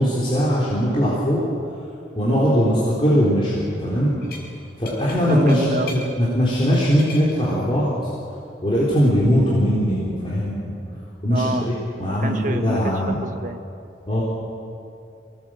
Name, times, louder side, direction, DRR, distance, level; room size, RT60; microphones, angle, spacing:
voice 1, 0.0-1.4 2.1-4.2 4.8-7.9 8.6-10.7 11.2-13.2 14.1-14.2, equal, 30° left, -7 dB, 3.9 m, -20 dB
sound 1, 4.2-4.5 4.9-6.1 6.5-7.3 8.8-9.3, left 4 dB, 60° left, 4.6 m, -39 dB
voice 2, 5.2-5.9 11.2-11.7 12.0-12.8 13.1-13.6, right 1 dB, 45° right, 6 dB, 1.4 m, -28 dB
24.0 x 18.5 x 7.7 m, 2.6 s
head